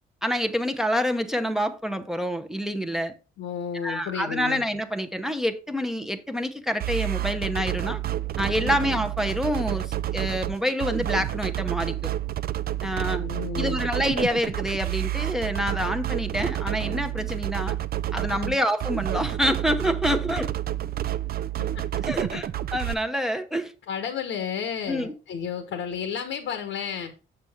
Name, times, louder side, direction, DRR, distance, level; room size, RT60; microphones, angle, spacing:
voice 1, 0.2-3.1 3.8-8.0 8.4-12.1 12.8-13.3 13.6-17.8 18.1-20.5 22.0-23.7 24.9-25.1, equal, ahead, 0.7 m, -27 dB
voice 2, 3.4-4.6 8.6-8.8 13.2-13.8 18.3-18.6 21.7-21.8 22.3-22.4 23.9-27.1, left 7 dB, 80° left, 1.1 m, -32 dB
sound 1, 6.8-22.9, right 13 dB, 50° right, 0.4 m, -29 dB
6.9 x 6.6 x 3.5 m
cardioid pair, 90°, 20 cm